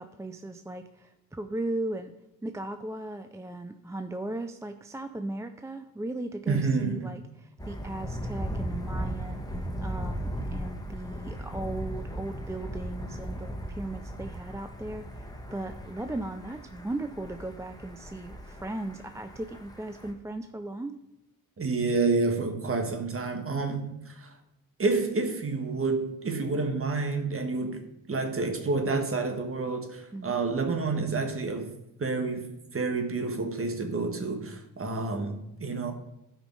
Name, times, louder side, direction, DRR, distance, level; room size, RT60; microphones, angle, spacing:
voice 1, 0.0-2.1 2.4-21.0 30.1-30.4, right 2 dB, 10° right, 0.4 m, -37 dB
voice 2, 6.5-7.2 21.6-24.4 24.8-31.7 32.0-35.9, right 3 dB, 35° right, 1.5 m, -29 dB
Thunder, 7.6-20.1, equal, 10° left, 1.2 m, -37 dB
12.5 x 5.2 x 5.3 m
cardioid pair, 110°, 36 cm